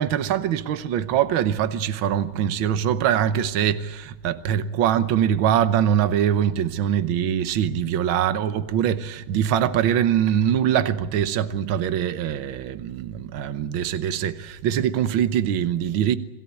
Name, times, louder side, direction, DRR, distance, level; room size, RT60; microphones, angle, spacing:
voice 1, 0.0-16.2, right 9 dB, 75° right, 1.7 m, -23 dB
27.5 x 17.5 x 8.4 m
omnidirectional pair, 2.3 m